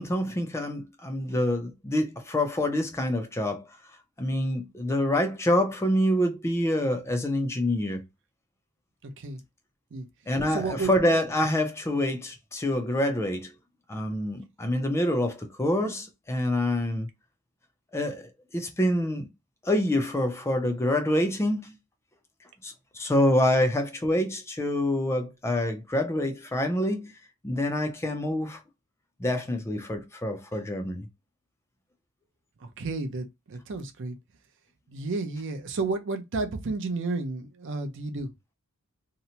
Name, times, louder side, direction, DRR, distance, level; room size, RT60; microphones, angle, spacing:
voice 1, 0.0-3.7 4.2-8.1 10.3-13.5 13.9-17.1 17.9-19.3 19.6-21.7 22.6-27.1 27.4-28.6 29.2-31.1, left 1 dB, 10° left, 0.3 m, -26 dB
voice 2, 9.0-9.4 9.9-10.1 10.5-10.9 32.6-34.2 34.9-38.3, right 3 dB, 55° right, 0.5 m, -32 dB
2.8 x 2.0 x 2.7 m
head